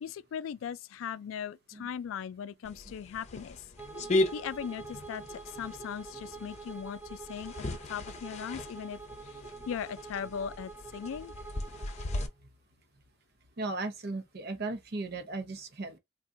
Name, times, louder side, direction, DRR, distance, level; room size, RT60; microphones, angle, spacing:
voice 1, 0.0-3.6 4.3-7.5 7.9-9.0 9.2-9.4 9.7-11.3, left 8 dB, 90° left, 0.3 m, -39 dB
sound 1, 2.6-12.3, left 2 dB, 35° left, 0.7 m, -37 dB
Bowed string instrument, 3.7-12.3, right 4 dB, 10° right, 0.6 m, -46 dB
voice 2, 13.6-16.0, right 3 dB, 55° right, 0.8 m, -36 dB
3.7 x 2.5 x 2.6 m
head